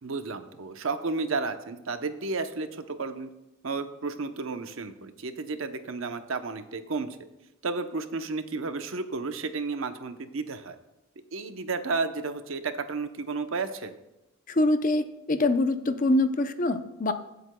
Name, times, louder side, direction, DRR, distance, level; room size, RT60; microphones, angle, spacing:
voice 1, 0.0-3.3 3.6-7.2 7.6-10.8 11.3-14.0, right 4 dB, 70° right, 8 dB, 0.8 m, -32 dB
voice 2, 14.5-17.1, left 2 dB, 40° left, 9 dB, 0.6 m, -24 dB
23.5 x 7.9 x 2.2 m, 0.94 s
head